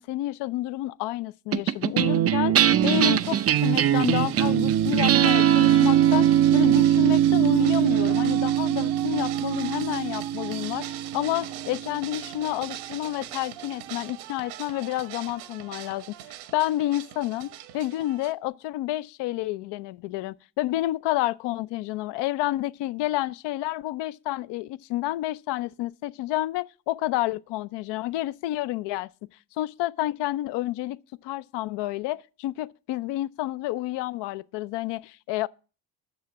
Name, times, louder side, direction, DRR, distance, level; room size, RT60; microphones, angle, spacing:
voice 1, 0.0-16.0 16.5-29.1 29.6-35.5, left 15 dB, 55° left, 0.6 m, -29 dB
sound 1, 1.5-12.1, right 11 dB, 30° right, 0.5 m, -21 dB
sound 2, 2.8-18.3, right 12 dB, 70° right, 1.3 m, -41 dB
10.5 x 7.3 x 7.0 m
hypercardioid pair, 55°, 50 cm